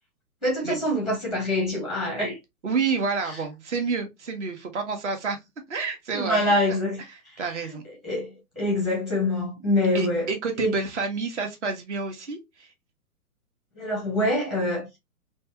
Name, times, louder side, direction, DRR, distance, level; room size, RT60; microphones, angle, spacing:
voice 1, 0.4-2.4 6.1-7.0 7.3-7.4 7.7-7.8 8.0-10.2 10.6-10.7 13.7-15.0, left 1 dB, ahead, 0.7 m, -25 dB
voice 2, 2.6-5.4 5.7-6.8 7.1-7.8 9.9-12.7, right 4 dB, 50° right, 1.0 m, -29 dB
3.1 x 2.3 x 2.8 m
figure-of-eight pair, 125°, 46 cm